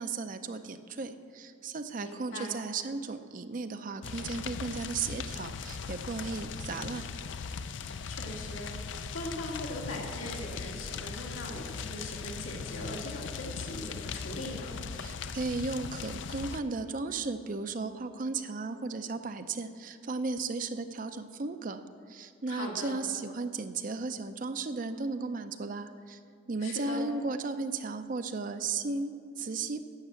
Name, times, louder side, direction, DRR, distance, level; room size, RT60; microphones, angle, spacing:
voice 1, 0.0-7.0 15.0-21.8 22.1-26.2 26.5-29.8, right 4 dB, 40° right, 9 dB, 0.5 m, -35 dB
voice 2, 2.0-2.5 8.1-8.8 9.1-14.7 22.5-23.0 26.6-27.0, left 1 dB, 85° left, -1 dB, 2.3 m, -40 dB
sound 1, 4.0-16.6, left 5 dB, 65° left, 0.5 m, -39 dB
11.5 x 7.9 x 7.5 m, 2.4 s
head